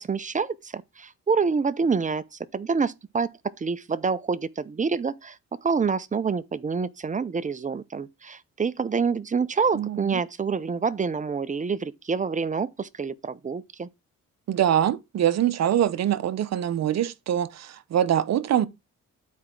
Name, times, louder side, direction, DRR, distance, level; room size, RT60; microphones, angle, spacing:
voice 1, 0.0-2.2 2.5-3.3 3.6-5.4 5.6-13.9, right 5 dB, 25° right, 0.8 m, -27 dB
voice 2, 9.7-10.2 14.5-18.7, right 10 dB, 60° right, 0.9 m, -24 dB
11.5 x 4.6 x 3.8 m
cardioid pair, 90°, 30 cm